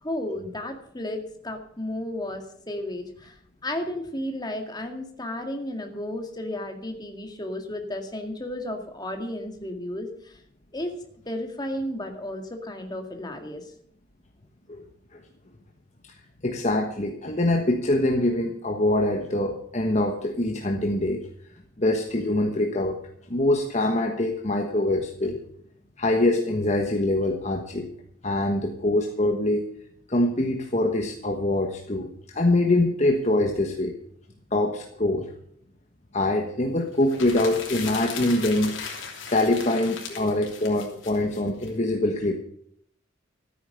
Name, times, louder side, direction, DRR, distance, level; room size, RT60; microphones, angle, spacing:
voice 1, 0.0-3.4 3.6-10.4 10.7-11.0 11.3-13.7, left 1 dB, 20° left, 4 dB, 2.0 m, -33 dB
voice 2, 16.4-21.2 21.8-23.0 23.3-25.4 26.0-27.9 28.2-29.7 30.1-33.9 34.5-35.3 36.1-38.8 39.3-42.4, left 1 dB, 35° left, 3 dB, 1.3 m, -24 dB
sound 1, 37.0-41.7, left 6 dB, 85° left, 3.2 m, -37 dB
13.5 x 9.4 x 6.7 m, 0.68 s
head